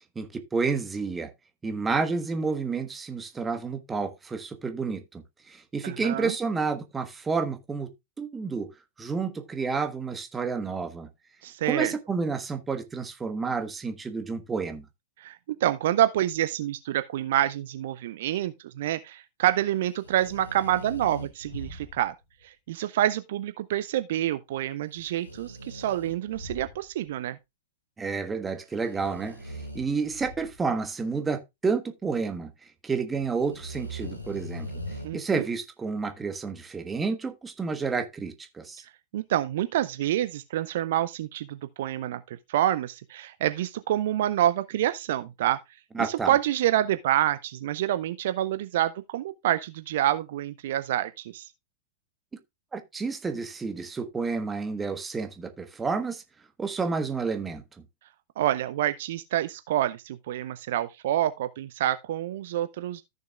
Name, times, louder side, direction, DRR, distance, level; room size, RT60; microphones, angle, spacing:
voice 1, 0.1-1.3 1.6-7.9 8.2-8.7 9.0-11.1 11.7-14.8 28.0-32.5 32.8-34.7 35.1-38.8 45.9-46.3 52.7-56.2 56.6-57.6, right 4 dB, 15° right, 1.3 m, -30 dB
voice 2, 5.8-6.3 11.4-11.9 15.2-22.1 22.4-27.4 35.0-35.4 39.1-45.6 46.0-51.5 58.4-63.0, right 12 dB, 60° right, 0.6 m, -27 dB
sound 1, 20.0-22.2 25.0-27.1 28.8-30.6 33.4-35.1, equal, 85° left, 2.0 m, -40 dB
14.0 x 6.6 x 2.4 m
figure-of-eight pair, 90°, 0 cm